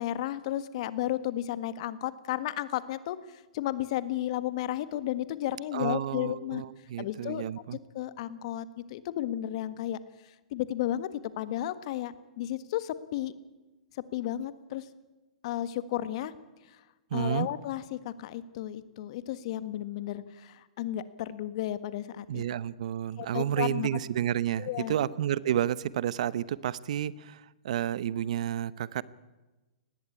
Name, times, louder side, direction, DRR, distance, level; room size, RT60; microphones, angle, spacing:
voice 1, 0.0-6.6 7.0-7.4 7.9-10.0 10.2-13.3 13.9-14.9 15.4-16.3 16.7-16.8 17.1-22.4 23.2-23.9 24.6-25.0, left 13 dB, 55° left, 15 dB, 1.5 m, -33 dB
voice 2, 5.7-7.8 17.1-17.5 22.3-29.0, right 11 dB, 65° right, 20 dB, 0.9 m, -31 dB
19.5 x 15.5 x 9.8 m, 1.1 s
hypercardioid pair, 135°, 4 cm